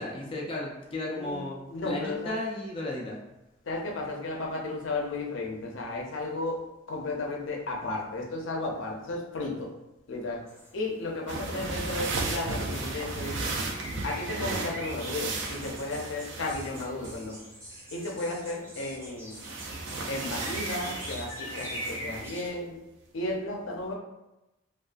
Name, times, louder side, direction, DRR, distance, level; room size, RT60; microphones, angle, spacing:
voice 1, 0.0-1.6 1.8-3.2, left 2 dB, 25° left, -3 dB, 0.3 m, -34 dB
voice 2, 1.1-2.3 3.7-6.6 6.9-9.7 10.1-10.4 10.7-13.5 14.0-17.4 17.9-19.4 20.1-22.8 23.1-23.9, left 2 dB, 80° left, -1 dB, 0.5 m, -34 dB
sound 1, 10.5-22.5, equal, 15° right, 0.6 m, -44 dB
sound 2, 11.3-17.2 19.3-22.3, right 3 dB, 65° right, 0.4 m, -35 dB
sound 3, 15.3-22.0, right 1 dB, 85° right, 0.9 m, -48 dB
2.3 x 2.2 x 2.4 m, 0.95 s
head